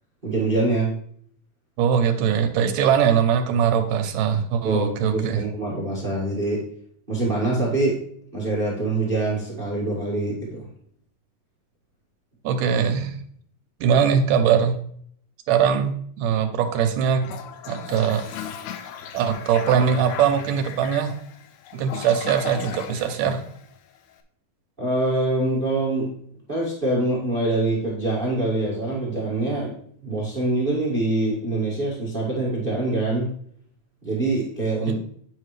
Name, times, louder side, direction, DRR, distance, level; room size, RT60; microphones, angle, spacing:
voice 1, 0.2-0.9 4.6-6.6 7.1-8.0 8.3-10.6 24.8-26.1 26.5-33.3 34.0-35.0, right 2 dB, 30° right, -5 dB, 0.9 m, -24 dB
voice 2, 1.8-5.4 12.4-13.2 13.8-14.8 15.5-17.3 17.7-18.3 19.1-21.1 21.7-23.4 34.9-35.0, right 7 dB, 75° right, 6 dB, 2.1 m, -21 dB
Toilet flush, 17.2-24.1, left 9 dB, 80° left, 1.9 m, -37 dB
8.8 x 5.8 x 3.2 m, 0.63 s
omnidirectional pair, 4.1 m